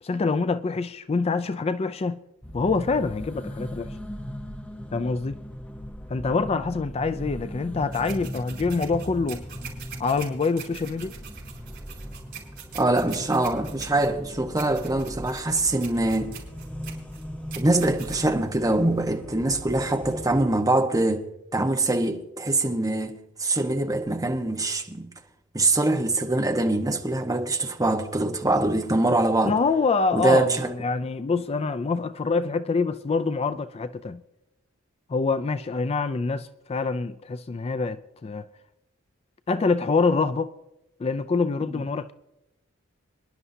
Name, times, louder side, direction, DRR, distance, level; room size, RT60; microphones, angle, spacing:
voice 1, 0.0-2.2 2.5-4.0 4.9-5.4 6.1-9.4 10.0-11.1 29.4-34.2 35.1-38.4 39.5-40.5 41.0-42.1, left 4 dB, 30° left, 0.4 m, -25 dB
sound 1, 2.4-20.4, equal, 5° left, 0.9 m, -39 dB
sound 2, 7.9-19.0, right 8 dB, 55° right, 4.8 m, -44 dB
voice 2, 12.7-16.4 17.6-21.3 21.5-25.1 25.5-29.6 30.1-30.7 41.7-41.8, right 2 dB, 15° right, 1.2 m, -23 dB
25.0 x 11.0 x 2.7 m
head